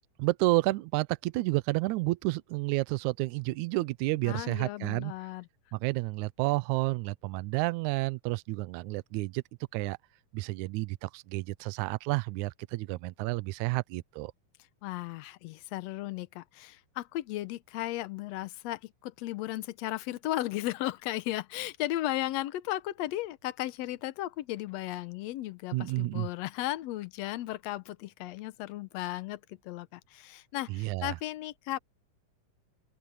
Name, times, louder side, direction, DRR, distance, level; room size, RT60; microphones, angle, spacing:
voice 1, 0.2-5.1 5.7-9.4 9.7-10.0 10.3-14.3 25.7-26.3 30.7-31.2, right 21 dB, 80° right, 1.9 m, -30 dB
voice 2, 4.2-5.5 14.8-31.8, left 15 dB, 70° left, 1.7 m, -35 dB
open air
omnidirectional pair, 3.6 m